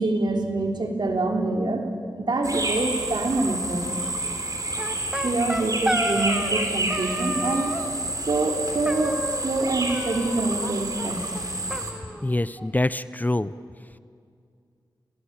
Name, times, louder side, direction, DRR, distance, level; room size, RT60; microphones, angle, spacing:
voice 1, 0.0-1.8 2.2-4.4 5.2-7.8 8.3-11.2, right 2 dB, 65° right, 3 dB, 3.3 m, -26 dB
sound 1, 2.4-11.9, right 1 dB, 45° right, 3.6 m, -29 dB
sound 2, 4.8-6.6 6.9-7.9 8.8-9.6 9.9-10.7 11.0-11.1 11.3-11.4 11.7-12.7, equal, 10° right, 1.8 m, -31 dB
voice 2, 12.2-13.5, left 1 dB, 20° left, 15 dB, 0.6 m, -25 dB
27.5 x 18.0 x 8.8 m, 2.2 s
wide cardioid pair, 60°, 8 cm